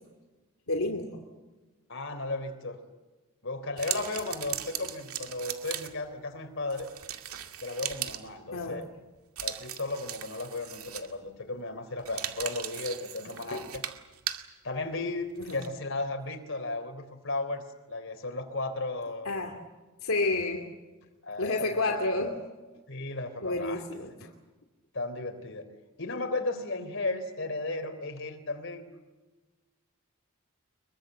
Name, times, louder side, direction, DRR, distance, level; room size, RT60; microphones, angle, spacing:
voice 1, 0.7-1.2 8.5-8.8 15.4-15.6 19.2-19.5 20.0-20.6 21.4-22.3 23.4-24.3, left 2 dB, 80° left, 3 dB, 2.6 m, -30 dB
voice 2, 1.9-2.8 3.4-6.9 7.6-8.9 9.4-13.8 14.6-19.5 21.2-22.0 22.9-23.8 24.2-24.3 24.9-25.7 26.0-28.9, left 2 dB, 60° left, 8 dB, 3.7 m, -35 dB
sound 1, 3.8-6.1 6.7-8.3 9.4-11.3 12.0-14.5 15.4-15.7, right 11 dB, 90° right, 2.2 m, -38 dB
25.5 x 23.0 x 7.9 m, 1.2 s
head